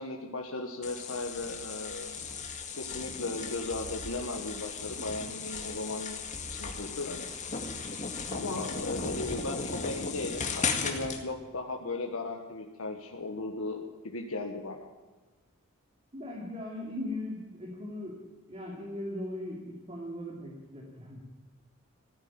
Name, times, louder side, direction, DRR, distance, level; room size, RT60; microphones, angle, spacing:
voice 1, 0.0-2.2 2.8-6.2 6.5-7.2 8.3-14.9, left 2 dB, 75° left, 2 dB, 1.5 m, -36 dB
sound 1, 0.8-11.2, left 4 dB, 35° left, 2.0 m, -36 dB
voice 2, 16.1-18.2 18.5-21.2, left 1 dB, 30° right, -3 dB, 2.9 m, -39 dB
15.5 x 9.8 x 8.8 m, 1.3 s
head